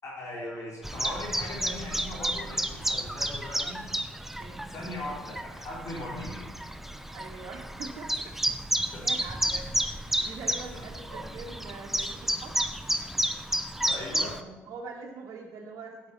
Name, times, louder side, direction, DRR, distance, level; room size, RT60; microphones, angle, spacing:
voice 1, 0.0-3.8 4.7-6.4 8.9-9.0 11.1-11.2 13.8-14.6, left 1 dB, 50° left, -3 dB, 4.0 m, -39 dB
Chirp tweet, 0.8-14.4, right 1 dB, 5° right, 0.8 m, -31 dB
voice 2, 7.1-8.3 9.0-12.5 14.6-16.1, right 4 dB, 55° right, -2 dB, 1.4 m, -43 dB
9.4 x 8.3 x 5.4 m, 1.2 s
hypercardioid pair, 55°, 6 cm